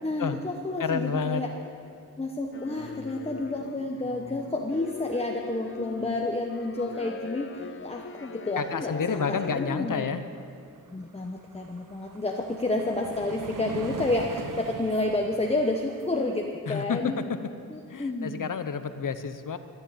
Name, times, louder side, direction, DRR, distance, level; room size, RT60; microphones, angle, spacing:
voice 1, 0.0-1.5 2.2-10.2 10.9-17.2 17.7-18.5, left 2 dB, 15° left, 1 dB, 1.0 m, -30 dB
voice 2, 0.8-1.4 8.6-10.2 16.7-17.1 17.9-19.6, left 6 dB, 65° left, 10 dB, 0.9 m, -29 dB
sound 1, 2.5-9.7, left 5 dB, 35° left, 0.6 m, -40 dB
sound 2, 10.4-10.5 10.8-16.5, right 5 dB, 65° right, 1.0 m, -42 dB
13.0 x 10.5 x 8.5 m, 2.6 s
wide cardioid pair, 105°, 34 cm